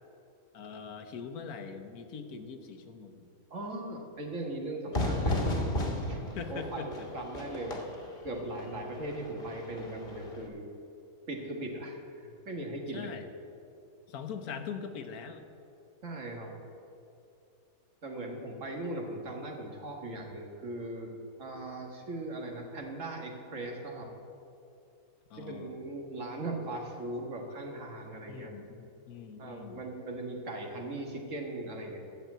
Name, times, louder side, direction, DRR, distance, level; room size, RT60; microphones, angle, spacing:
voice 1, 0.5-3.3 6.3-6.9 7.1-7.2 12.9-13.3 14.1-15.4 25.3-25.8 28.3-29.8, left 6 dB, 85° left, 7 dB, 1.4 m, -42 dB
voice 2, 3.5-5.5 5.8-7.8 8.2-10.7 11.3-13.2 16.0-16.6 18.0-21.1 21.4-24.1 25.4-28.5 29.4-32.0, right 1 dB, 60° right, 1 dB, 2.0 m, -39 dB
Fire / Fireworks, 4.9-10.5, left 1 dB, 35° left, 1.5 m, -34 dB
11.5 x 7.3 x 9.2 m, 2.7 s
omnidirectional pair, 1.5 m